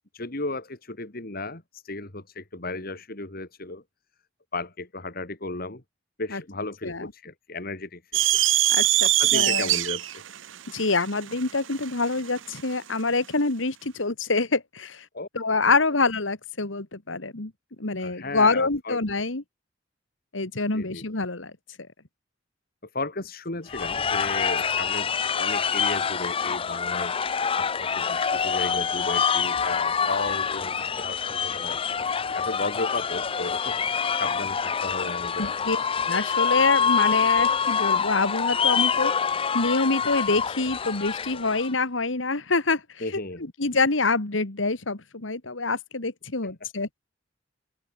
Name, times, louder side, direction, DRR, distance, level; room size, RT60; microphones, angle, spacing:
voice 1, 0.1-3.8 4.5-5.8 6.2-8.5 9.0-10.2 15.1-15.3 15.6-15.8 18.0-19.0 20.7-21.0 22.9-25.1 25.3-27.2 27.5-31.9 32.3-33.8 34.1-35.8 43.0-43.5 46.4-46.5, left 2 dB, 50° left, 2.8 m, -34 dB
sound 1, 8.1-12.7, right 15 dB, 80° right, 0.9 m, -23 dB
voice 2, 8.7-9.7 10.7-15.0 15.3-17.5 17.8-19.4 20.3-21.5 35.4-35.8 36.1-39.1 39.5-42.8 43.6-47.0, left 3 dB, 85° left, 2.1 m, -26 dB
sound 2, 23.7-41.7, left 6 dB, 30° left, 0.5 m, -26 dB
open air
head